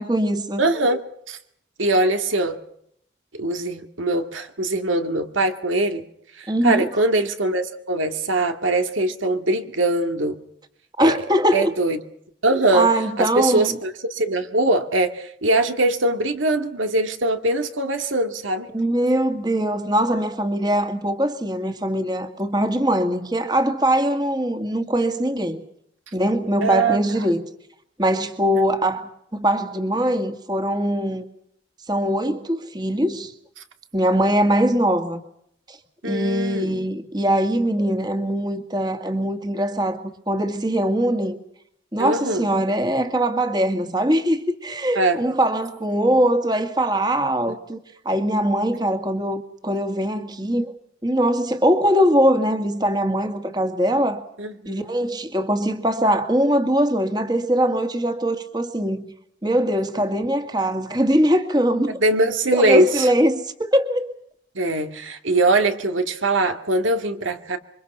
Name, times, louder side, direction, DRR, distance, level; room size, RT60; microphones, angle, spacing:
voice 1, 0.0-0.6 6.5-6.9 11.0-11.7 12.7-13.7 18.7-25.6 26.1-27.4 28.0-31.2 31.9-33.3 33.9-35.2 35.7-35.8 36.0-41.4 41.9-47.8 48.1-50.7 51.0-54.2 54.7-59.1 59.4-62.0 62.5-64.1, equal, 20° right, 1.9 m, -21 dB
voice 2, 0.6-1.4 1.8-2.6 3.3-6.0 6.3-10.4 11.0-11.2 11.5-12.0 12.4-12.9 13.2-18.7 26.6-27.3 36.0-36.8 42.0-42.5 45.0-45.2 54.4-55.0 62.0-63.1 64.5-67.6, right 2 dB, 90° right, 2.3 m, -22 dB
28.0 x 24.5 x 5.6 m
head